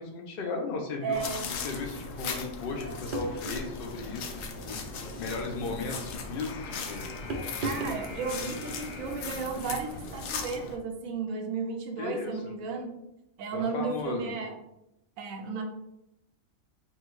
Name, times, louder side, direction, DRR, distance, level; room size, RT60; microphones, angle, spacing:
voice 1, 0.0-4.8 5.2-7.0 9.6-9.8 12.0-12.5 13.5-14.3, left 4 dB, 50° left, 2 dB, 0.8 m, -36 dB
voice 2, 1.0-1.4 7.6-12.9 13.4-14.6 15.2-15.6, right 5 dB, 85° right, 3 dB, 1.1 m, -34 dB
sound 1, 1.1-10.8, left 4 dB, 80° left, 1.0 m, -38 dB
sound 2, 3.1-3.7 5.0-5.4 7.3-8.0, right 2 dB, 55° right, 0.6 m, -35 dB
5.8 x 2.3 x 3.1 m, 0.86 s
omnidirectional pair, 1.4 m